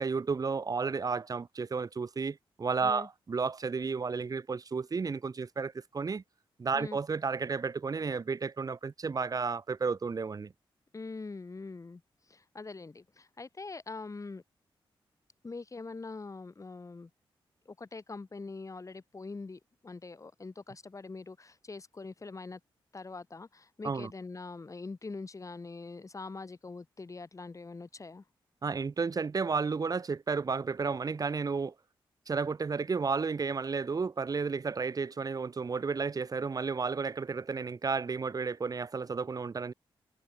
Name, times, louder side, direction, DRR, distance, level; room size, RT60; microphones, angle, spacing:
voice 1, 0.0-6.2 6.6-10.5 23.8-24.1 28.6-31.7 32.3-39.7, right 5 dB, 40° right, 0.9 m, -32 dB
voice 2, 10.9-12.0 12.3-14.4 15.4-17.1 17.7-22.6 22.9-28.2, left 3 dB, 35° left, 3.8 m, -43 dB
cardioid pair, 75°, 9 cm